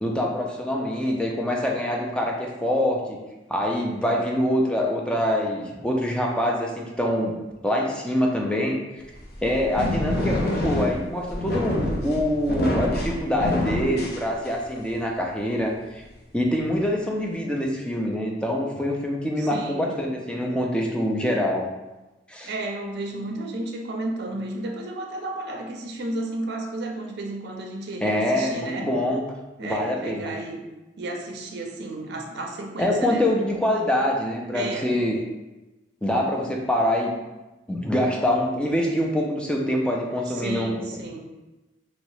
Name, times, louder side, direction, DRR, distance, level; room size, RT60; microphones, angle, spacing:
voice 1, 0.0-3.2 3.5-7.4 7.6-8.8 9.4-16.0 16.3-21.7 22.3-22.5 28.0-29.2 29.6-30.3 32.8-35.2 36.0-37.1 37.7-40.8, left 1 dB, 5° left, 0 dB, 0.4 m, -25 dB
sound 1, 9.1-14.8, left 1 dB, 55° left, 0.6 m, -27 dB
voice 2, 19.4-20.0 22.4-28.9 29.6-30.6 31.0-33.3 34.5-34.9 40.3-41.2, right 2 dB, 60° right, 3 dB, 0.5 m, -33 dB
3.0 x 2.7 x 3.1 m, 1.1 s
head